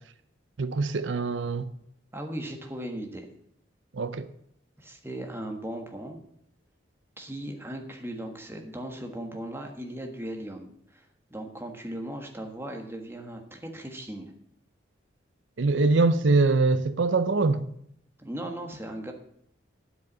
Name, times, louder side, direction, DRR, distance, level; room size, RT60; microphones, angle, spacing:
voice 1, 0.6-1.7 3.9-4.3 15.6-17.6, right 3 dB, 80° right, 0.6 m, -23 dB
voice 2, 2.1-3.3 4.8-6.2 7.2-14.3 18.2-19.1, right 1 dB, 15° right, 1.4 m, -37 dB
9.3 x 8.0 x 7.3 m
head